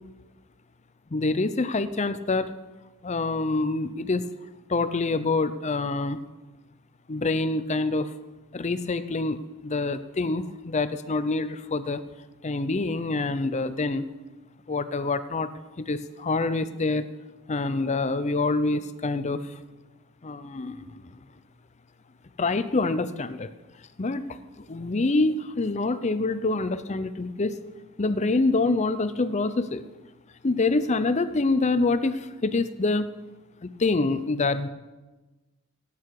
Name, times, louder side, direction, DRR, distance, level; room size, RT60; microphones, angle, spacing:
voice 1, 1.1-2.5 3.0-4.2 4.7-6.2 7.1-8.1 8.5-12.0 12.4-14.1 14.7-15.5 15.8-17.0 17.5-19.4 20.2-21.1 22.4-23.5 24.0-24.3 24.7-27.6 28.0-29.9 30.4-33.1 33.6-34.7, left 3 dB, 30° left, 13 dB, 0.6 m, -26 dB
17.5 x 8.6 x 4.8 m, 1.2 s
head